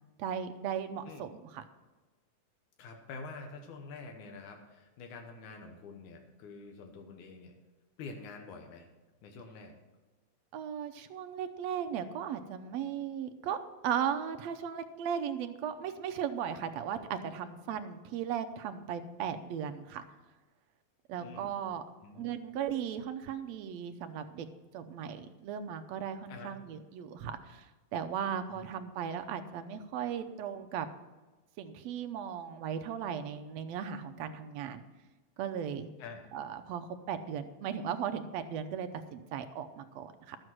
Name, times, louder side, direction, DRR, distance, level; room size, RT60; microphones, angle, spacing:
voice 1, 0.2-1.6 10.5-13.6 13.8-20.0 21.1-21.8 22.2-24.5 24.7-30.9 31.6-34.8 35.4-35.9 36.3-40.4, right 8 dB, 75° right, 8 dB, 1.8 m, -37 dB
voice 2, 2.8-7.5 8.0-8.9 9.2-9.7 21.2-21.5 22.0-22.4 26.3-26.6 28.5-28.7 36.0-36.3, left 4 dB, 85° left, 3 dB, 2.6 m, -47 dB
12.5 x 7.9 x 6.0 m, 1.2 s
omnidirectional pair, 3.4 m